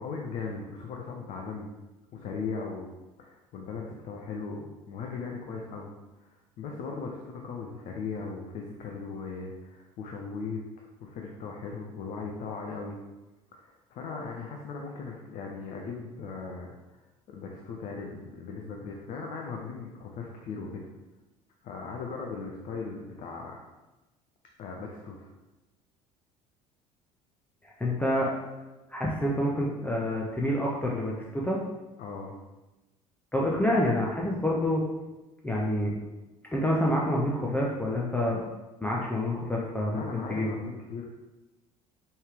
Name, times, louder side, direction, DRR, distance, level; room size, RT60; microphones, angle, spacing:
voice 1, 0.0-1.7 2.1-2.9 3.2-5.9 6.2-13.0 13.5-17.0 17.3-20.9 21.6-23.6 24.6-25.3 32.0-32.3 39.9-41.1, left 4 dB, 40° left, 0 dB, 0.6 m, -38 dB
voice 2, 27.6-28.3 28.9-31.6 33.3-34.8 35.4-36.0 36.5-38.5 38.8-40.6, left 1 dB, 10° left, -4 dB, 0.6 m, -27 dB
4.4 x 3.3 x 3.4 m, 1.1 s
figure-of-eight pair, 60°, 19 cm